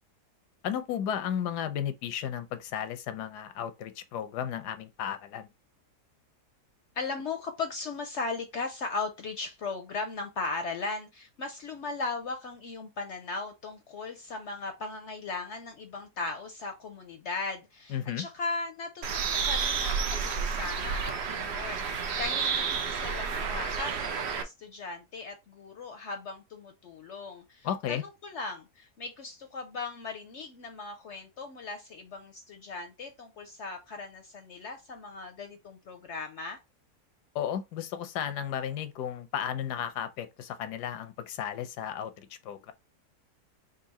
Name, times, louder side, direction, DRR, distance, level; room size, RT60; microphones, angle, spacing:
voice 1, 0.6-5.5 17.9-18.2 27.6-28.0 37.3-42.7, left 9 dB, 85° left, 1.2 m, -34 dB
voice 2, 6.9-36.6, left 3 dB, 60° left, 0.8 m, -38 dB
Bird, 19.0-24.4, right 5 dB, 65° right, 0.6 m, -30 dB
3.7 x 2.7 x 4.1 m
omnidirectional pair, 1.7 m